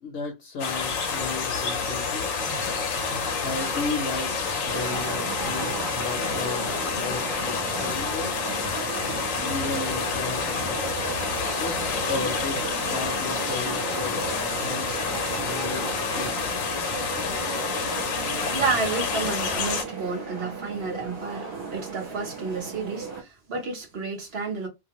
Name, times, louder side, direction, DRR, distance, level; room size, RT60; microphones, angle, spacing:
voice 1, 0.0-2.3 3.4-4.4 4.6-8.3 9.4-10.9 11.6-16.5, left 4 dB, 60° left, 0.9 m, -35 dB
sound 1, 0.6-19.8, left 5 dB, 85° left, 1.0 m, -29 dB
sound 2, 1.5-16.5, right 5 dB, 80° right, 1.0 m, -40 dB
sound 3, 4.7-23.2, right 5 dB, 25° right, 0.8 m, -36 dB
voice 2, 18.5-24.7, right 4 dB, 50° right, 1.1 m, -30 dB
2.7 x 2.2 x 2.9 m
omnidirectional pair, 1.3 m